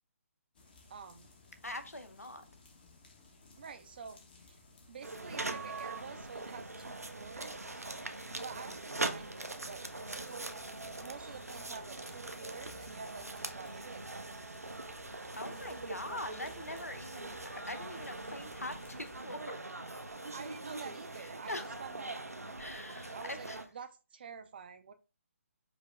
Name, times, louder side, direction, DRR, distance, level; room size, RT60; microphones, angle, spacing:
sound 1, 0.5-19.3, left 3 dB, 40° left, 0.9 m, -59 dB
voice 1, 0.9-1.3 3.6-4.2 4.5-4.6 4.9-7.8 8.4-10.7 11.0-15.2 15.6-15.7 15.9-16.0 20.3-22.4 23.1-24.9, right 6 dB, 40° right, 0.5 m, -49 dB
voice 2, 1.6-2.4 15.4-19.6 19.9-20.0 21.2-21.7 22.6-23.6, left 1 dB, 85° left, 0.8 m, -43 dB
sound 2, 5.0-23.7, right 2 dB, 85° right, 0.6 m, -42 dB
5.1 x 2.1 x 3.4 m
figure-of-eight pair, 145°, 8 cm